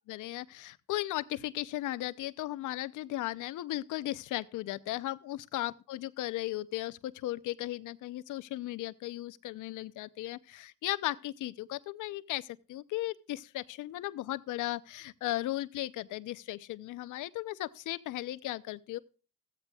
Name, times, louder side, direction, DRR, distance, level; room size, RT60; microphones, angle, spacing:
voice 1, 0.1-19.0, left 15 dB, 80° left, 0.7 m, -36 dB
15.5 x 14.5 x 2.4 m
cardioid pair, 90°, 30 cm